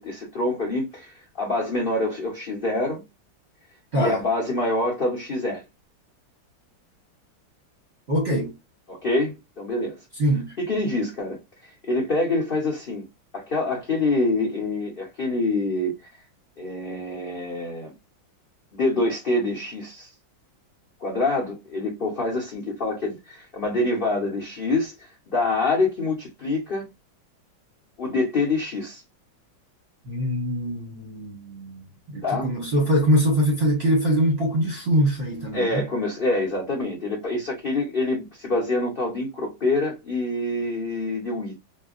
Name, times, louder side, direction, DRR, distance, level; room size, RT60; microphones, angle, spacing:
voice 1, 0.0-3.0 3.9-5.6 8.9-10.0 10.6-13.1 13.3-15.9 16.6-17.9 18.7-20.1 21.0-26.9 28.0-29.0 32.2-32.5 35.5-41.6, left 2 dB, 70° left, 0.5 m, -26 dB
voice 2, 8.1-8.5 10.2-10.5 30.1-31.8 32.1-35.9, equal, 50° right, 0.8 m, -23 dB
3.4 x 2.2 x 2.4 m
omnidirectional pair, 2.3 m